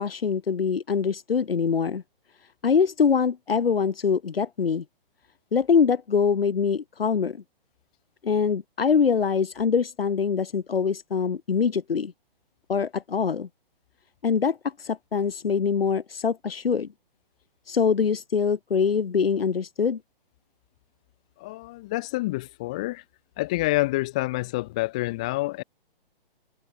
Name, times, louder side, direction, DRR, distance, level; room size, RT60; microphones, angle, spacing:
voice 1, 0.0-2.0 2.6-4.8 5.5-7.4 8.2-12.1 12.7-13.5 14.2-16.9 17.7-20.0, left 6 dB, 75° left, 5.6 m, -24 dB
voice 2, 21.4-23.0 23.4-25.6, left 20 dB, 5° left, 0.5 m, -27 dB
hypercardioid pair, 170°, 29 cm